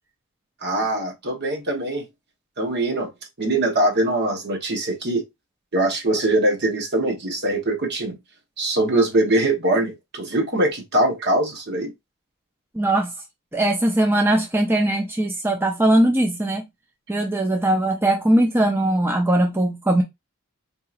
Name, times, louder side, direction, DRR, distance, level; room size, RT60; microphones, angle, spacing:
voice 1, 0.6-2.0 2.6-3.1 3.4-5.3 5.7-8.2 8.6-11.9, right 1 dB, 50° right, 1.0 m, -22 dB
voice 2, 12.7-13.1 13.5-16.7 17.1-20.0, right 1 dB, 10° right, 0.5 m, -20 dB
4.4 x 2.8 x 2.4 m
head